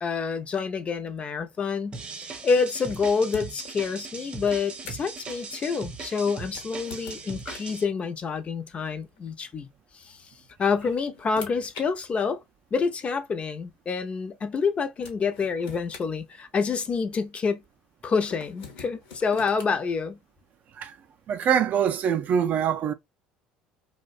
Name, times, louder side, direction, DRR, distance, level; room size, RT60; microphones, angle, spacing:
voice 1, 0.0-2.0 2.4-9.7 10.1-10.2 10.6-12.4 12.7-17.6 18.0-20.2, left 5 dB, 35° left, 0.5 m, -27 dB
sound 1, 1.9-7.8, right 4 dB, 30° right, 0.7 m, -39 dB
sound 2, 2.8-3.7 4.5-5.2 6.4-7.8 9.1-9.3 10.4-11.9 12.8-12.9 14.6-14.7 15.0-16.9 18.2-19.8, left 5 dB, 75° left, 0.9 m, -45 dB
voice 2, 21.3-22.9, right 8 dB, 50° right, 0.4 m, -24 dB
2.5 x 2.1 x 2.4 m
hypercardioid pair, 75°, 4 cm